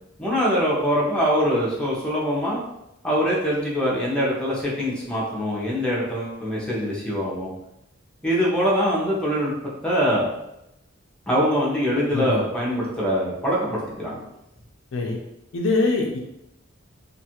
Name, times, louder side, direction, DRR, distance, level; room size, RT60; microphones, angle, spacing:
voice 1, 0.2-2.6 3.0-7.5 8.2-9.5 9.8-10.3 11.3-14.2, equal, 5° left, -6 dB, 0.6 m, -23 dB
voice 2, 12.1-12.4 14.9-15.2 15.5-16.2, left 3 dB, 65° left, 1 dB, 0.4 m, -23 dB
2.5 x 2.3 x 2.9 m, 0.86 s
head